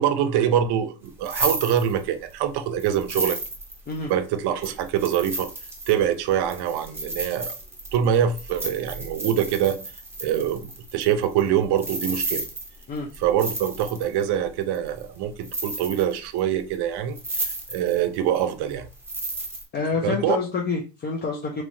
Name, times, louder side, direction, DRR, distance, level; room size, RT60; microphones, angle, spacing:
voice 1, 0.0-3.4 4.1-5.5 5.9-7.5 7.9-9.8 10.2-12.5 13.2-18.9 20.0-20.4, right 9 dB, 50° right, 0.6 m, -24 dB
sound 1, 1.1-2.3 2.8-4.1 4.6-14.2 14.7-15.2 15.4-16.4 16.7-16.8 17.2-18.0 18.3-19.7, right 2 dB, 5° right, 0.8 m, -33 dB
voice 2, 19.7-21.6, left 4 dB, 25° left, 0.4 m, -27 dB
3.1 x 2.8 x 2.6 m
supercardioid pair, 100°, 50 cm